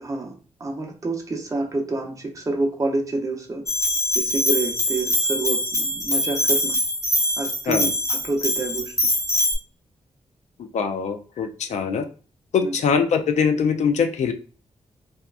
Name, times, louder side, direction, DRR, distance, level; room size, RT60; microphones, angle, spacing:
voice 1, 0.0-3.6 4.1-6.8 7.4-8.9 11.9-12.0 12.6-12.8, right 2 dB, 30° right, 1 dB, 0.6 m, -28 dB
Bell, 3.7-9.5, left 1 dB, 25° left, 0.5 m, -23 dB
voice 2, 10.6-12.1 12.5-14.3, left 6 dB, 75° left, 5 dB, 0.4 m, -22 dB
2.8 x 2.2 x 2.3 m, 0.37 s
wide cardioid pair, 130°, 12 cm